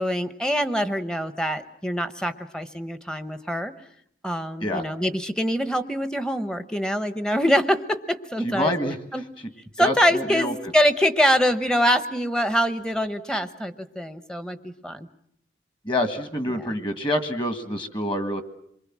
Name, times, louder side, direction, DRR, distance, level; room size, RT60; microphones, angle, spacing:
voice 1, 0.0-3.7 4.2-8.7 9.1-9.2 9.8-15.1 16.5-16.7, equal, 5° left, 11 dB, 0.9 m, -24 dB
voice 2, 8.4-9.0 9.8-10.5 15.8-18.4, left 1 dB, 25° left, 9 dB, 1.7 m, -26 dB
27.5 x 23.0 x 7.5 m, 0.71 s
head